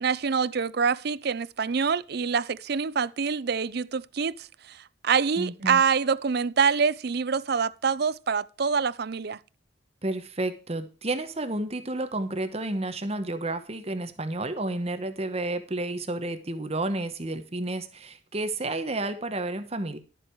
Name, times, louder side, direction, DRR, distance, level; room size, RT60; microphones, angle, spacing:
voice 1, 0.0-4.8 5.0-9.4, right 6 dB, 55° right, 0.5 m, -26 dB
voice 2, 5.4-5.8 10.0-20.0, right 2 dB, 30° right, 1.1 m, -31 dB
12.0 x 7.6 x 4.6 m
head